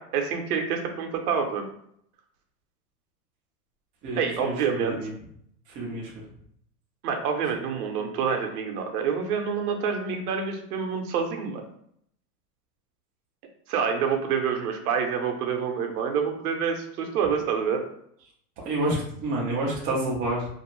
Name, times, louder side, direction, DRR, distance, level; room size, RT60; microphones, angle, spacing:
voice 1, 0.0-1.7 4.2-5.0 7.0-11.7 13.7-17.8, right 6 dB, 65° right, 4 dB, 0.8 m, -27 dB
voice 2, 4.0-5.1 5.8-6.1 18.6-20.5, right 1 dB, 20° right, -4 dB, 0.4 m, -28 dB
2.6 x 2.3 x 2.9 m, 0.69 s
supercardioid pair, 135°, 48 cm